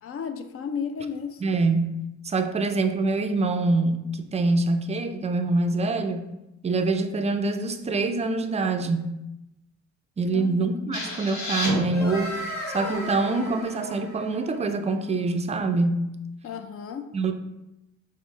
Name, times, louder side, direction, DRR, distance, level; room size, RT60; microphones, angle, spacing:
voice 1, 0.0-1.4 10.3-10.9 16.4-17.1, left 6 dB, 50° left, 8 dB, 0.4 m, -34 dB
voice 2, 1.4-6.3 6.6-9.1 10.2-12.4 12.7-16.0 17.1-17.3, right 3 dB, 20° right, 7 dB, 0.4 m, -25 dB
sound 1, 10.9-14.7, left 1 dB, 65° left, 1.3 m, -33 dB
5.2 x 2.1 x 3.1 m, 0.92 s
cardioid pair, 90°, 30 cm